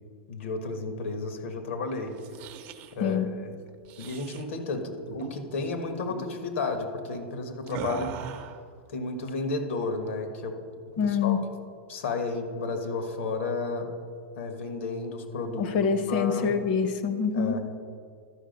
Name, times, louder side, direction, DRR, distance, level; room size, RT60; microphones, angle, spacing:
voice 1, 0.3-2.1 2.9-3.5 4.0-8.1 8.9-10.6 11.0-11.4 11.9-13.9 14.3-15.7 16.1-16.6 17.3-17.6, left 3 dB, 75° left, 6 dB, 1.4 m, -32 dB
sound 1, 2.1-2.9 3.8-4.4 5.1-5.3 5.6-5.8 6.1-6.4 7.7-8.6, right 7 dB, 35° right, 0.6 m, -39 dB
voice 2, 11.0-11.4 15.6-17.6, left 6 dB, 50° left, 10 dB, 0.8 m, -25 dB
12.0 x 5.0 x 5.3 m, 2.1 s
supercardioid pair, 155°, 7 cm